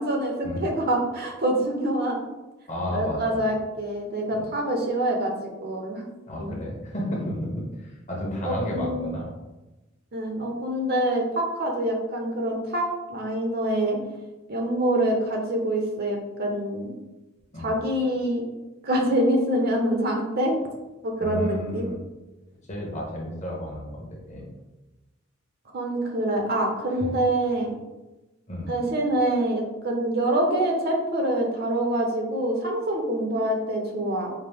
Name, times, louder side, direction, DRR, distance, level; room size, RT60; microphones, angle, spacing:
voice 1, 0.0-2.2 2.9-5.3 5.6-6.0 6.4-6.5 8.4-9.0 10.1-14.0 14.5-16.9 17.6-18.4 18.8-20.6 21.0-21.9 25.7-27.8 28.7-34.3, right 1 dB, 50° right, 2 dB, 0.7 m, -25 dB
voice 2, 2.7-3.4 4.3-4.4 6.3-9.3 17.5-17.7 21.2-21.9 22.7-24.4 26.9-27.1 28.5-28.7, left 1 dB, 35° left, -3 dB, 1.1 m, -32 dB
5.7 x 2.1 x 3.4 m, 1.1 s
head